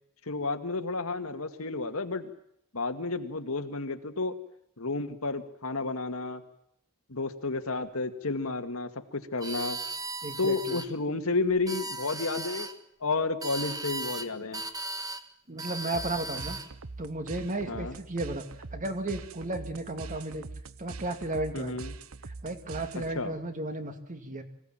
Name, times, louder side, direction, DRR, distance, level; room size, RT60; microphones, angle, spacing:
voice 1, 0.3-2.3 2.7-4.4 4.8-6.4 7.1-9.8 10.4-12.7 13.0-14.6 17.7-17.9 21.5-21.9 22.9-23.3, left 3 dB, 80° left, 7 dB, 2.0 m, -31 dB
sound 1, 9.4-10.9 11.5-12.7 13.4-14.3 14.5-15.2 15.6-16.7, right 2 dB, 15° right, 1.4 m, -37 dB
voice 2, 10.2-10.8 15.5-16.6 17.0-18.4 18.7-20.5 20.8-21.8 22.4-24.4, right 2 dB, 40° right, 6 dB, 2.7 m, -34 dB
sound 2, 15.9-23.4, right 3 dB, 70° right, 0.9 m, -43 dB
25.0 x 17.0 x 9.0 m, 0.76 s
head